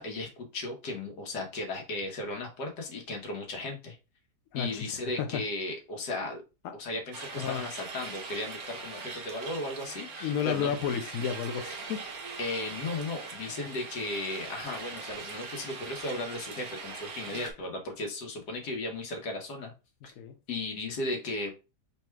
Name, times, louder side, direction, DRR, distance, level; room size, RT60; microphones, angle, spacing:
voice 1, 0.0-4.0 4.5-6.4 6.7-11.0 12.4-19.7 20.0-20.1 20.5-21.5, left 2 dB, 85° left, 1.7 m, -36 dB
voice 2, 4.5-5.4 7.4-7.6 10.2-12.0 20.2-20.4, left 8 dB, 65° left, 0.9 m, -32 dB
sound 1, 7.1-17.5, right 4 dB, 65° right, 1.4 m, -41 dB
4.1 x 2.2 x 4.5 m
omnidirectional pair, 1.8 m